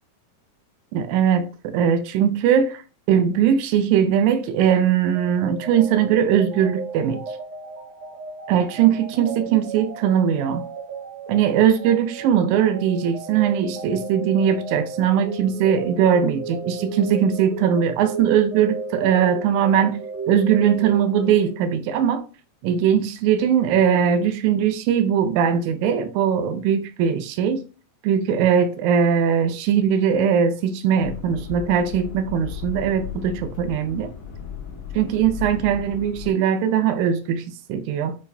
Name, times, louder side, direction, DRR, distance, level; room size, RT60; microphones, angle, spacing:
voice 1, 0.9-2.8 3.1-7.2 8.5-10.7 11.3-20.0 20.3-22.3 22.6-27.6 28.0-34.1 34.9-38.2, right 8 dB, 85° right, 1.7 m, -20 dB
sound 1, 5.1-21.7, right 4 dB, 55° right, 1.1 m, -34 dB
sound 2, 31.0-36.3, left 7 dB, 75° left, 1.3 m, -36 dB
6.5 x 2.2 x 2.6 m
omnidirectional pair, 4.0 m